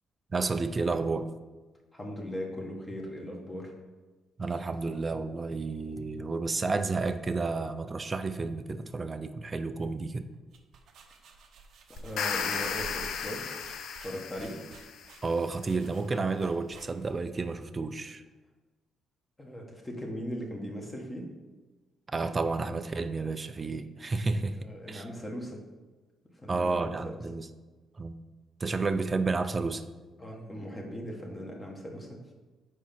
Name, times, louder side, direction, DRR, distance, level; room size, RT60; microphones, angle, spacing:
voice 1, 0.3-1.3 4.4-10.3 15.2-18.2 22.1-24.6 24.9-25.1 26.5-27.5 28.0-28.2 28.6-29.8, right 3 dB, 30° right, 10 dB, 0.5 m, -31 dB
voice 2, 1.9-3.7 11.9-13.5 14.0-14.6 19.4-21.3 24.6-25.6 26.4-27.1 30.2-32.2, equal, 20° left, 0 dB, 1.5 m, -39 dB
sound 1, 10.3-17.3, right 4 dB, 70° right, 0.7 m, -51 dB
sound 2, 12.0-15.1, left 7 dB, 75° left, 0.5 m, -34 dB
4.7 x 4.5 x 5.7 m, 1.2 s
cardioid pair, 90°, 0 cm